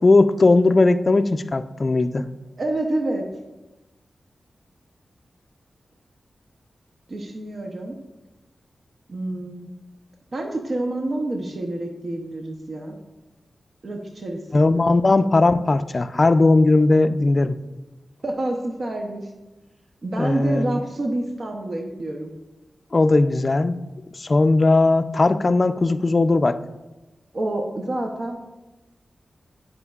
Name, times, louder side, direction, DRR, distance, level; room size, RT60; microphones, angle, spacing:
voice 1, 0.0-2.2 14.5-17.6 20.2-20.8 22.9-23.8 24.1-26.6, left 2 dB, 45° left, 11 dB, 0.4 m, -18 dB
voice 2, 2.6-3.3 7.1-8.0 9.1-9.7 10.3-13.0 13.8-15.0 18.2-19.3 20.0-22.3 27.3-28.4, right 1 dB, 60° right, 2 dB, 0.7 m, -28 dB
9.8 x 5.1 x 2.4 m, 1.1 s
cardioid pair, 55°, 0 cm